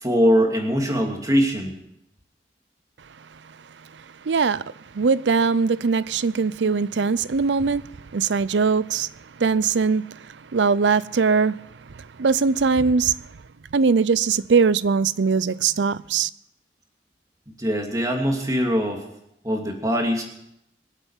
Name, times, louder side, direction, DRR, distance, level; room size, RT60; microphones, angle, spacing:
voice 1, 0.0-1.7 17.6-19.0 19.4-20.2, equal, 20° right, 2.7 m, -22 dB
voice 2, 4.3-4.6 4.9-7.8 8.1-9.1 9.4-10.1 10.5-11.6 12.2-13.1 13.7-16.3, right 5 dB, 90° right, 0.5 m, -21 dB
24.0 x 8.2 x 7.4 m
head